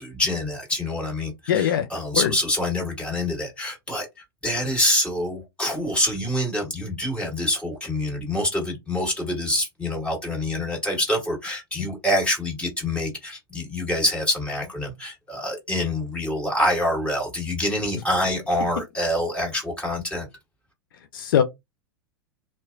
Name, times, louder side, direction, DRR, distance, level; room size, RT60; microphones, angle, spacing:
voice 1, 0.0-4.1 4.4-20.3, left 1 dB, 10° left, 1.6 m, -26 dB
voice 2, 1.5-1.9 2.1-2.3 21.1-21.4, left 9 dB, 60° left, 0.4 m, -20 dB
2.7 x 2.1 x 2.5 m
figure-of-eight pair, 90°, 13 cm